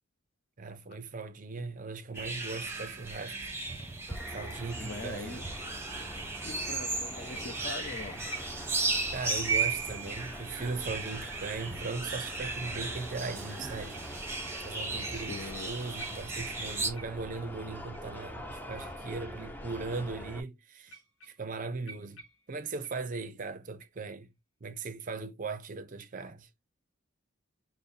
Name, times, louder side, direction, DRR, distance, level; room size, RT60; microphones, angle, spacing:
voice 1, 0.6-3.5 4.3-5.5 8.1-8.2 9.1-14.1 14.6-22.2 22.5-24.3 24.6-26.5, right 4 dB, 40° right, 0.5 m, -39 dB
sound 1, 2.2-16.9, right 3 dB, 10° right, 0.9 m, -36 dB
sound 2, 4.1-20.4, equal, 10° left, 0.5 m, -44 dB
voice 2, 4.8-5.4 6.4-8.2 15.1-15.7, left 3 dB, 50° left, 0.7 m, -42 dB
sound 3, 17.0-17.4 17.9-18.1 18.9-19.0 19.9-20.0 20.8-21.6 21.9-23.4 23.8-24.2 24.8-25.1, right 3 dB, 70° left, 1.2 m, -50 dB
5.3 x 2.1 x 4.1 m
head